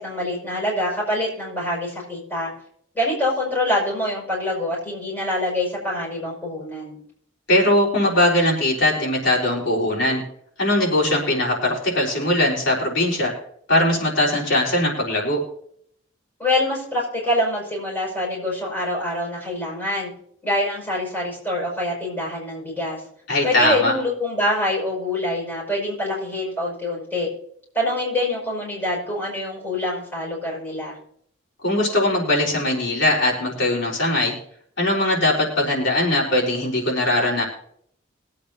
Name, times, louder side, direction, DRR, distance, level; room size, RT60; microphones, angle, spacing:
voice 1, 0.0-2.5 2.9-7.0 16.4-20.1 20.4-23.0 23.4-27.3 27.7-31.0, left 1 dB, 10° left, -4 dB, 5.6 m, -25 dB
voice 2, 7.5-10.2 10.6-13.3 13.7-15.4 23.3-23.9 31.6-34.3 34.8-37.4, left 1 dB, 70° left, -2 dB, 4.0 m, -20 dB
22.5 x 8.5 x 2.7 m, 0.65 s
head